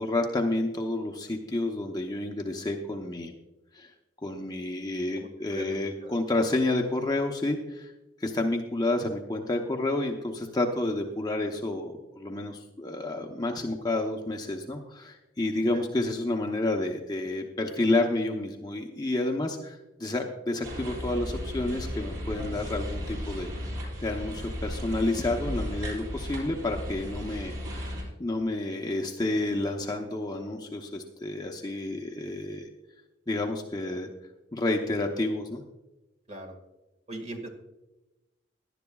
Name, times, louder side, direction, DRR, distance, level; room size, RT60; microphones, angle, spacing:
voice 1, 0.0-3.3 3.7-3.9 4.2-7.9 8.2-23.5 24.0-27.5 28.2-32.7 33.3-34.1 34.5-35.6, left 2 dB, 20° left, 2 dB, 0.8 m, -30 dB
voice 2, 5.2-6.1 15.7-15.9 36.3-36.6 37.1-37.5, right 1 dB, 35° right, 3 dB, 1.9 m, -40 dB
sound 1, 20.6-28.0, equal, 90° right, 4.5 m, -35 dB
17.5 x 11.0 x 2.4 m, 1.0 s
head